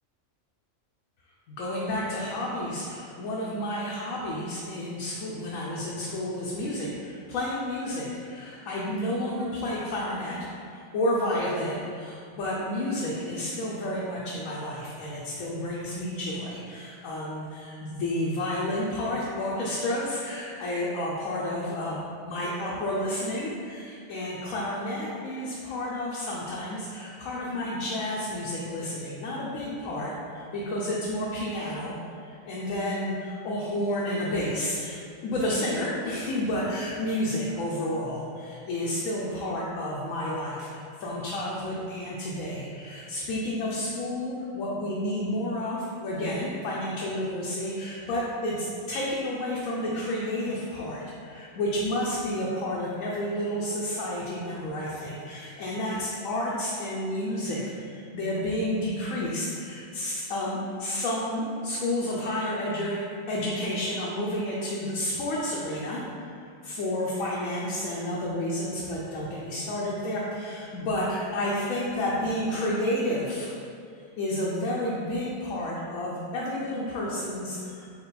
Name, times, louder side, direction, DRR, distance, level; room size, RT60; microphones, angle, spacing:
voice 1, 1.5-73.5 74.2-77.9, left 1 dB, 80° left, -5 dB, 1.0 m, -31 dB
4.5 x 2.9 x 4.1 m, 2.4 s
omnidirectional pair, 1.4 m